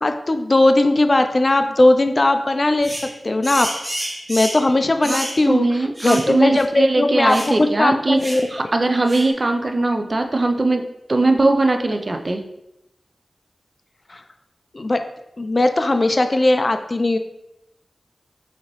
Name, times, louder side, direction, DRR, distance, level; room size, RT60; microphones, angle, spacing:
voice 1, 0.0-3.7 4.3-5.7 6.0-8.4 14.1-14.2 14.7-15.1 15.4-17.2, left 2 dB, 40° left, 8 dB, 0.3 m, -18 dB
sound 1, 2.8-3.1 3.4-4.6 5.0-5.4 6.0-6.3 6.5-6.7 7.3-7.6 8.2-8.5 9.1-9.3, equal, 15° right, 1.3 m, -29 dB
voice 2, 5.5-10.8 11.1-12.4, right 2 dB, 45° right, 5 dB, 0.4 m, -20 dB
4.0 x 2.8 x 3.0 m, 0.86 s
wide cardioid pair, 60°, 0 cm